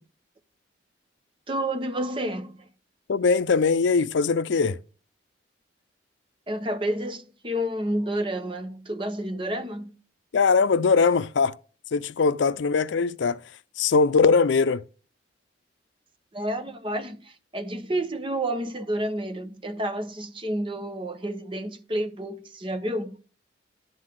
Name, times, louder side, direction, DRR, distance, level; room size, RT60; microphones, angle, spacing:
voice 1, 1.5-2.7 6.5-10.0 16.3-23.2, right 1 dB, 25° right, 0.9 m, -30 dB
voice 2, 3.1-4.8 10.3-11.6 11.9-13.4 13.8-14.8, left 4 dB, 80° left, 0.5 m, -21 dB
11.0 x 4.0 x 7.6 m
head